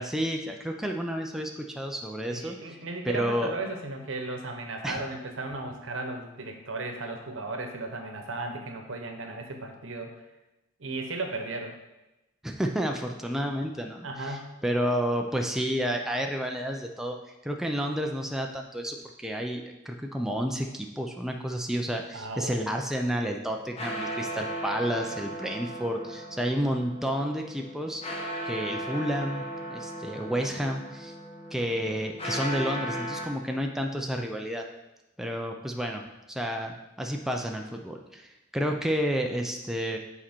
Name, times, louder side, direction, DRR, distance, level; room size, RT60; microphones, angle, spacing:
voice 1, 0.0-3.5 4.8-5.0 12.4-28.0 28.4-31.1 31.5-34.6 35.2-36.0 36.3-40.0, equal, ahead, 2 dB, 0.4 m, -31 dB
voice 2, 2.3-10.1 10.8-11.8 14.0-14.5 22.1-22.6, right 2 dB, 75° right, 4 dB, 1.0 m, -35 dB
sound 1, 23.5-33.3, right 1 dB, 30° left, 1.0 m, -36 dB
7.4 x 4.3 x 4.4 m, 0.97 s
head